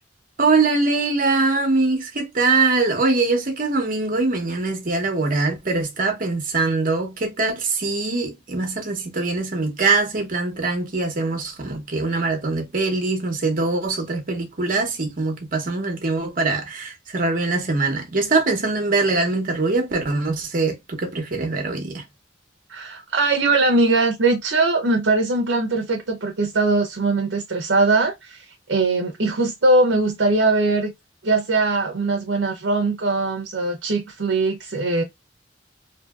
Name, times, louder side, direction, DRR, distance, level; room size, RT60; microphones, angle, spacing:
voice 1, 0.4-22.0, right 3 dB, 50° right, 0.9 m, -22 dB
voice 2, 22.7-30.9 31.2-35.0, right 3 dB, 80° right, 0.7 m, -21 dB
2.7 x 2.7 x 2.4 m
head